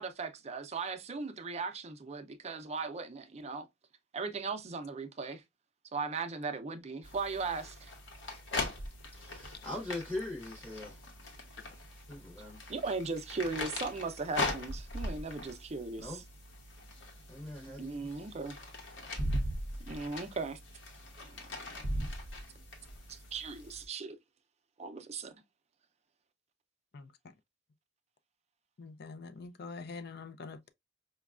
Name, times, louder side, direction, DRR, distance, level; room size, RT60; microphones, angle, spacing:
voice 1, 0.0-3.7 4.1-5.4 5.9-7.9 12.7-16.2 17.8-18.6 19.9-20.6 21.2-22.1 23.1-24.2 24.8-25.3, right 4 dB, 35° right, 0.5 m, -38 dB
sound 1, 7.0-23.8, left 1 dB, 70° left, 1.0 m, -40 dB
voice 2, 9.1-11.0 12.1-12.6 16.0-16.2 17.3-18.1, left 1 dB, 10° left, 0.8 m, -41 dB
voice 3, 28.8-30.7, left 4 dB, 55° left, 0.4 m, -45 dB
5.0 x 2.2 x 2.3 m
head